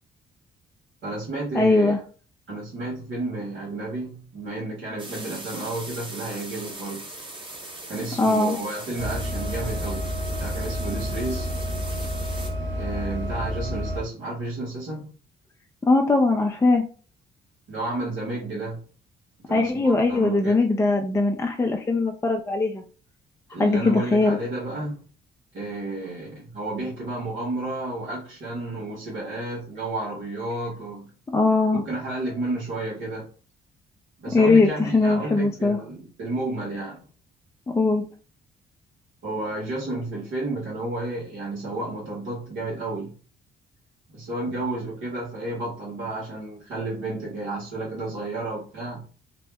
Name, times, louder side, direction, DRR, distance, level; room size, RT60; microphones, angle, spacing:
voice 1, 1.0-1.9 2.5-7.0 7.9-10.1 10.4-11.6 12.7-15.1 17.7-18.8 19.5-20.6 23.5-25.0 25.5-31.1 31.8-33.3 34.2-37.0 39.2-43.1 44.1-49.0, right 2 dB, 80° right, -5 dB, 1.2 m, -31 dB
voice 2, 1.5-2.0 8.2-8.6 15.8-16.8 19.5-22.8 23.6-24.4 31.3-31.8 34.3-35.8 37.7-38.0, left 3 dB, 15° left, 2 dB, 0.3 m, -20 dB
sound 1, 5.0-12.5, right 2 dB, 25° right, 0.8 m, -40 dB
sound 2, 9.0-14.0, equal, 65° right, 0.8 m, -29 dB
2.7 x 2.1 x 3.3 m, 0.38 s
cardioid pair, 90°, 20 cm